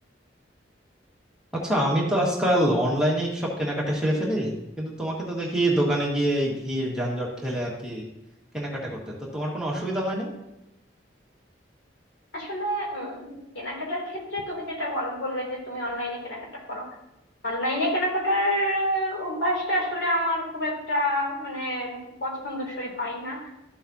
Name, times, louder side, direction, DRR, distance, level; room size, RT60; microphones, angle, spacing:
voice 1, 1.5-8.1 8.5-10.3, right 1 dB, 5° right, -4 dB, 1.8 m, -26 dB
voice 2, 12.3-16.9 17.4-23.4, equal, 80° left, -2 dB, 3.1 m, -28 dB
13.0 x 7.5 x 2.8 m, 0.88 s
head